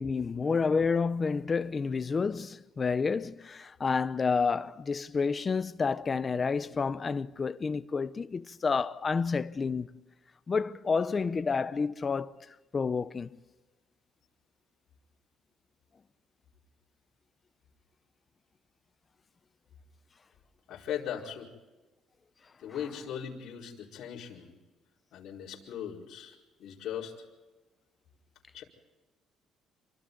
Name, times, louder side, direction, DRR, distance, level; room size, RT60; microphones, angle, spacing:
voice 1, 0.0-9.9 10.5-12.5 12.7-13.4, left 5 dB, 25° left, 0.7 m, -29 dB
voice 2, 20.7-21.5 22.6-24.5 25.1-27.1 28.5-28.6, left 9 dB, 60° left, 4.8 m, -39 dB
27.5 x 24.5 x 4.0 m
cardioid pair, 160°, 0 cm